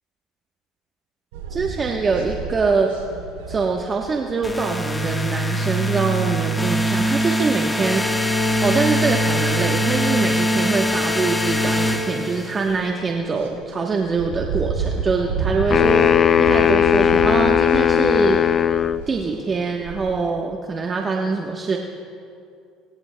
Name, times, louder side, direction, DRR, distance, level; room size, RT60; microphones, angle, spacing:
sound 1, 1.3-20.1, right 5 dB, 90° right, 3.0 m, -33 dB
voice 1, 1.5-2.9 3.5-8.1 8.6-16.1 16.4-18.4 19.1-21.8, right 4 dB, 35° right, 1 dB, 1.1 m, -23 dB
sound 2, 4.4-12.8, equal, 10° left, 1.4 m, -22 dB
sound 3, 15.7-19.0, left 8 dB, 45° left, 0.3 m, -17 dB
23.0 x 16.5 x 2.3 m, 2.5 s
supercardioid pair, 80°, 0 cm